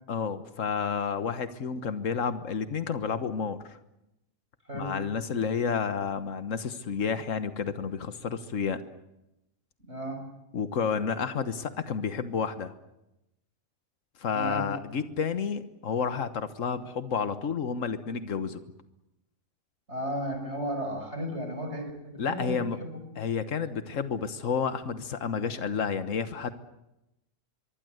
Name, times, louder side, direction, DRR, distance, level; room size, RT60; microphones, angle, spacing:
voice 1, 0.1-3.8 4.7-8.8 10.5-12.7 14.2-18.6 22.2-22.8 23.2-26.6, left 6 dB, 85° left, 10 dB, 1.6 m, -30 dB
voice 2, 9.9-10.2 14.3-14.6 19.9-23.0, equal, 60° right, 5 dB, 6.0 m, -34 dB
25.0 x 23.0 x 8.0 m, 0.90 s
omnidirectional pair, 1.3 m